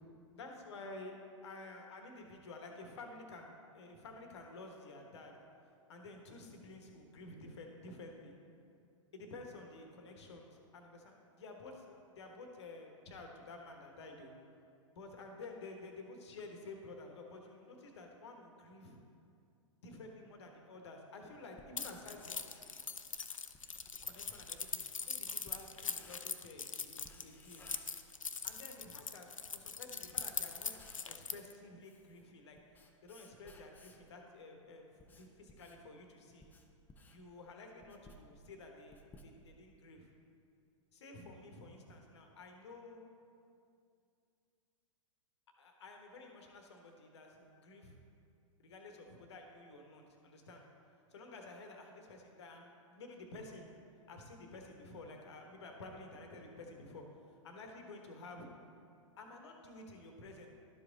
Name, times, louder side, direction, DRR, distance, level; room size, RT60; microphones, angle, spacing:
voice 1, 0.3-1.2 1.4-5.3 5.9-8.3 9.1-14.3 14.9-19.0 19.8-22.5 24.0-27.6 28.4-30.7 31.0-32.6 33.0-36.4 37.1-40.1 40.9-43.0 45.6-47.9 48.6-50.6 51.1-53.7 54.1-58.5 59.2-60.5, left 2 dB, 55° left, 3 dB, 1.2 m, -51 dB
Writing, 21.6-26.5 27.0-28.5 28.8-28.9 29.5-29.7 30.1-31.2 31.6-34.1 34.7-39.8, left 2 dB, 10° left, 0.5 m, -60 dB
Keys jangling, 21.8-31.5, left 5 dB, 80° left, 0.5 m, -42 dB
12.0 x 4.9 x 3.9 m, 2.5 s
figure-of-eight pair, 105°, 17 cm